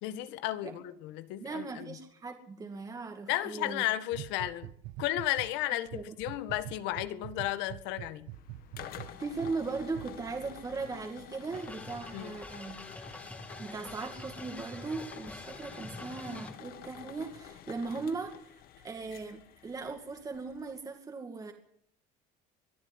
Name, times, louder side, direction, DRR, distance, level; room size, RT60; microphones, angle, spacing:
voice 1, 0.0-2.0 3.3-4.7 5.0-8.3 12.1-12.4, left 14 dB, 80° left, 1.8 m, -33 dB
voice 2, 1.4-3.8 5.9-6.1 9.2-12.8 13.6-21.5, right 4 dB, 20° right, 2.3 m, -38 dB
sound 1, 4.1-5.5 5.9-9.6 9.9-10.1, right 17 dB, 75° right, 1.1 m, -44 dB
sound 2, 8.3-20.8, left 11 dB, 55° left, 2.1 m, -49 dB
sound 3, 11.5-16.5, left 1 dB, 10° left, 2.5 m, -46 dB
23.0 x 13.0 x 9.8 m
cardioid pair, 155°, 18 cm